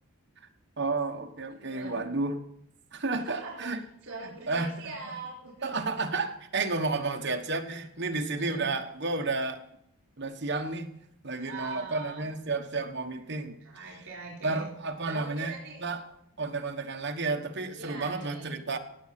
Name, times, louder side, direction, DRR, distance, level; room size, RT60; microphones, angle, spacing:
voice 1, 0.8-2.4 2.9-3.8 4.2-4.7 5.0-5.1 5.6-9.6 10.2-10.9 11.2-13.6 13.9-14.0 14.4-15.5 15.8-16.1 16.4-18.8, right 3 dB, 50° right, 4 dB, 1.2 m, -31 dB
voice 2, 1.6-2.0 3.1-3.7 4.0-5.9 8.4-8.7 11.4-12.3 13.6-14.7 15.0-15.8 17.8-18.5, right 3 dB, 65° right, -3 dB, 4.2 m, -42 dB
18.0 x 7.5 x 5.9 m, 0.76 s
head